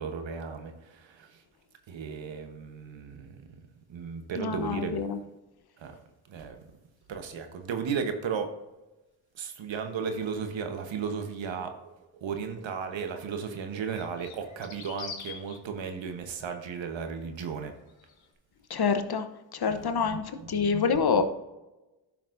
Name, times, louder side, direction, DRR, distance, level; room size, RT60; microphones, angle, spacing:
voice 1, 0.0-1.4 1.9-3.5 3.9-5.0 5.8-5.9 6.3-6.6 7.1-8.5 9.3-17.7 19.7-20.9 21.1-21.2, right 6 dB, 75° right, 6 dB, 1.1 m, -35 dB
voice 2, 4.4-5.2 18.7-19.3 19.5-21.2, left 5 dB, 55° left, 9 dB, 0.9 m, -27 dB
sound 1, 12.9-13.0 13.9-15.6 17.9-18.3, left 6 dB, 80° left, 1.2 m, -43 dB
11.0 x 5.9 x 2.6 m, 1.0 s
supercardioid pair, 45°, 45 cm